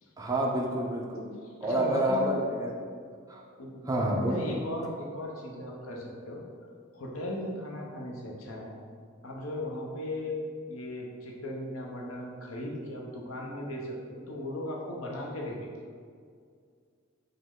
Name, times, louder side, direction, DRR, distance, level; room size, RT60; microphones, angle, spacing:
voice 1, 0.2-1.3 1.6-2.7 3.3-3.4 3.9-4.4, right 1 dB, 15° right, -1 dB, 0.4 m, -28 dB
voice 2, 1.4-2.4 3.6-6.4 6.9-8.7 9.2-15.7, left 1 dB, 80° left, -1 dB, 0.7 m, -37 dB
5.1 x 2.2 x 3.6 m, 2.1 s
head